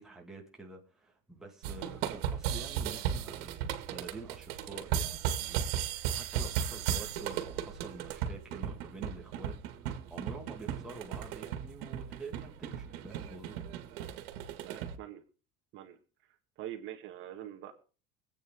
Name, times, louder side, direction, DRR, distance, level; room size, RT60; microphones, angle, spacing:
voice 1, 0.0-13.6, right 3 dB, ahead, -1 dB, 2.0 m, -48 dB
sound 1, 1.6-15.0, right 9 dB, 75° right, 2.2 m, -36 dB
voice 2, 14.6-15.2 15.7-16.0 16.6-17.7, right 11 dB, 40° right, 5 dB, 1.8 m, -44 dB
25.0 x 9.0 x 3.7 m, 0.40 s
cardioid pair, 170°, 31 cm